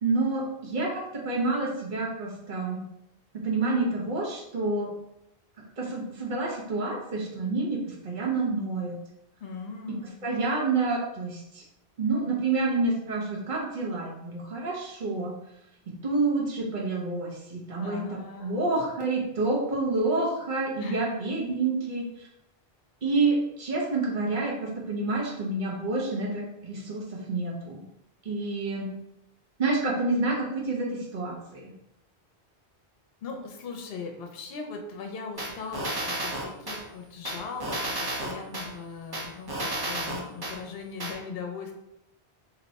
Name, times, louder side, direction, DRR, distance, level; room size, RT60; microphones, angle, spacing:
voice 1, 0.0-2.8 3.4-4.9 5.8-8.9 10.2-11.6 12.0-15.3 16.0-22.3 23.0-27.8 28.2-28.9 29.6-31.6, right 3 dB, 50° right, -2 dB, 0.9 m, -28 dB
voice 2, 9.4-10.2 17.8-18.7 20.8-21.0 33.2-41.7, left 5 dB, 65° left, 3 dB, 0.8 m, -39 dB
sound 1, 35.4-36.8 37.2-38.7 39.1-40.5 41.0-41.1, right 1 dB, 30° right, 0.5 m, -32 dB
2.8 x 2.2 x 3.9 m, 0.83 s
omnidirectional pair, 1.1 m